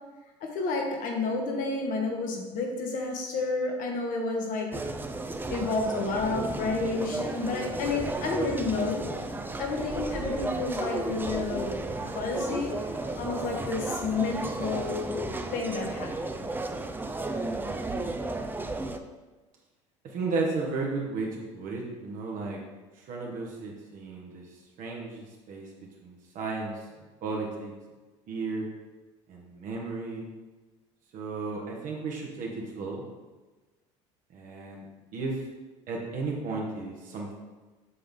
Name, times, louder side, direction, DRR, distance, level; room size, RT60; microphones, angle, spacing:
voice 1, 0.4-4.7 5.5-9.0 9.6-11.8 12.1-12.9 13.2-15.2 15.5-16.3, left 3 dB, 60° left, 1 dB, 1.4 m, -30 dB
sound 1, 4.7-19.0, right 2 dB, 15° right, 0.5 m, -34 dB
voice 2, 20.1-22.6 23.1-24.5 24.8-25.7 26.0-26.8 27.2-27.7 28.3-28.7 29.3-30.2 31.1-33.1 34.3-34.9 35.1-35.4 35.9-37.3, right 3 dB, 55° right, -1 dB, 1.2 m, -34 dB
7.7 x 3.4 x 3.9 m, 1.2 s
hypercardioid pair, 80°, 16 cm